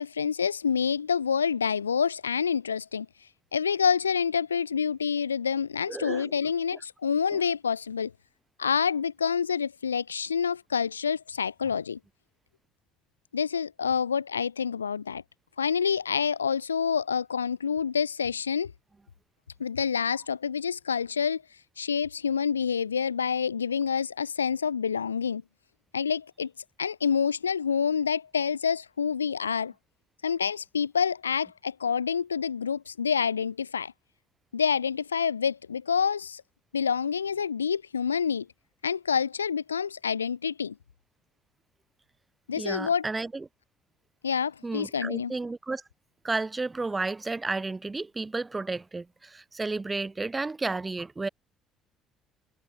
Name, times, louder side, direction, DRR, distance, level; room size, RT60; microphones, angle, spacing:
voice 1, 0.0-3.1 3.5-8.1 8.6-12.0 13.3-15.2 15.6-18.7 19.6-21.4 21.8-25.4 25.9-26.5 26.8-29.7 30.2-33.9 34.5-36.4 36.7-38.5 38.8-40.7 42.5-43.0 44.2-45.3, left 6 dB, 85° left, 1.1 m, -27 dB
voice 2, 5.9-6.3 7.3-7.4 42.5-43.5 44.6-45.8 46.2-51.3, right 3 dB, 20° right, 7.2 m, -32 dB
figure-of-eight pair, 50°, 0 cm